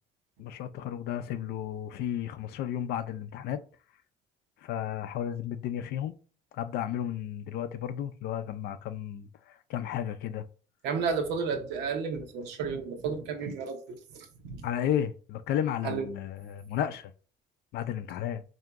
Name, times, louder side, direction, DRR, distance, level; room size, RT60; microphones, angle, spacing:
voice 1, 0.4-3.6 4.6-6.1 6.5-9.3 9.7-10.4 14.6-17.1 17.7-18.4, left 10 dB, 75° left, 0.4 m, -33 dB
voice 2, 10.8-14.6 15.8-16.1, right 5 dB, 90° right, 0.8 m, -32 dB
3.8 x 2.7 x 3.4 m
cardioid pair, 110°, 17 cm